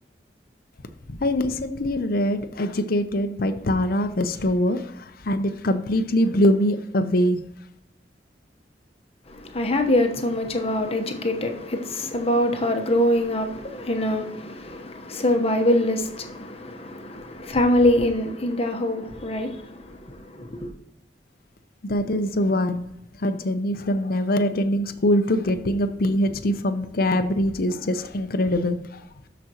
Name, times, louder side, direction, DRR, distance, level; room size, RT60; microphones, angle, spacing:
voice 1, 1.1-7.4 21.8-22.9 23.2-29.0, left 1 dB, 55° left, 0.7 m, -23 dB
voice 2, 9.3-20.7, left 1 dB, 35° left, 1.1 m, -24 dB
13.0 x 5.1 x 3.0 m
head